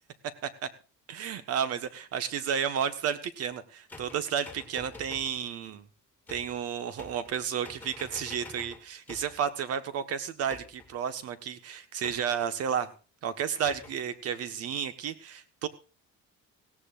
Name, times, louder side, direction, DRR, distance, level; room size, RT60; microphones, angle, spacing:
voice 1, 1.1-5.9 6.3-12.9 13.2-15.7, right 8 dB, 50° right, 12 dB, 1.5 m, -32 dB
sound 1, 3.9-5.4 6.3-6.6 7.0-7.4 7.6-9.4 10.5-11.0 12.0-12.5 13.6-14.0, left 2 dB, 5° left, 2.2 m, -47 dB
17.5 x 17.5 x 2.6 m, 0.34 s
cardioid pair, 170°, 31 cm